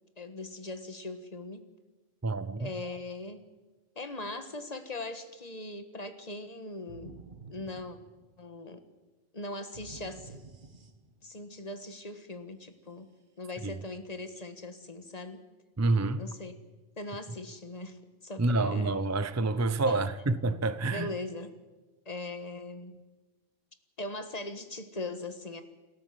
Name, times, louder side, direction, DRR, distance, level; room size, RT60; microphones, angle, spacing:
voice 1, 0.2-1.7 2.6-3.4 3.9-7.2 7.5-8.0 8.4-8.8 9.3-10.4 11.2-13.1 13.4-15.4 16.2-16.6 17.0-19.0 19.9-20.1 20.9-21.5 22.0-22.9 24.0-25.6, left 2 dB, 30° left, 1.7 m, -40 dB
voice 2, 2.2-2.7 13.6-13.8 15.8-16.2 18.4-21.1, right 3 dB, 20° right, 0.5 m, -28 dB
sound 1, 6.9-8.6 9.7-11.4, right 4 dB, 40° right, 1.5 m, -50 dB
28.0 x 13.5 x 7.6 m
omnidirectional pair, 1.4 m